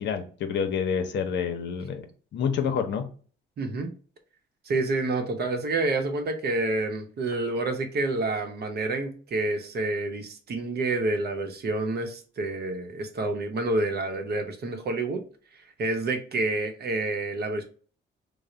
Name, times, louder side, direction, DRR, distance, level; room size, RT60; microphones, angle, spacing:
voice 1, 0.0-2.1 2.3-3.1, left 7 dB, 65° left, 6 dB, 0.7 m, -28 dB
voice 2, 3.6-3.9 4.6-15.2 15.6-17.6, right 2 dB, 55° right, 5 dB, 0.8 m, -28 dB
3.2 x 2.1 x 3.7 m, 0.41 s
cardioid pair, 90°, 20 cm